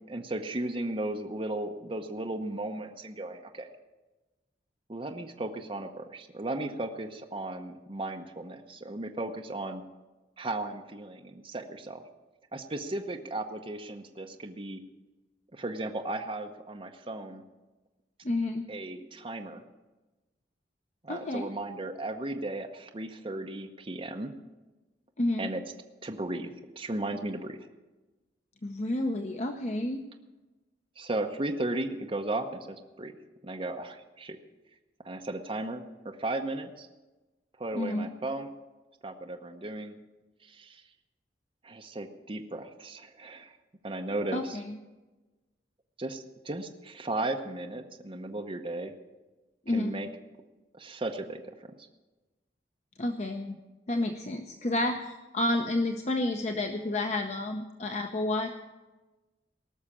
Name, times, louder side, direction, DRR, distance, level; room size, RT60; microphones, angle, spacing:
voice 1, 0.1-3.7 4.9-9.8 10.4-12.0 12.5-14.8 15.5-17.4 18.7-19.6 21.0-24.3 25.4-25.6 26.0-27.6 31.0-33.2 33.4-34.4 35.0-36.9 37.6-38.5 39.0-40.0 40.4-40.8 41.6-43.5 43.8-44.6 46.0-48.9 49.7-50.1 50.7-51.9, right 2 dB, 30° right, 4 dB, 0.9 m, -35 dB
voice 2, 18.2-18.7 21.1-21.5 25.2-25.5 28.6-30.0 37.7-38.1 44.3-44.8 49.7-50.0 53.0-53.6 53.9-58.5, left 1 dB, 40° left, 5 dB, 0.8 m, -30 dB
18.5 x 6.4 x 8.5 m, 1.1 s
head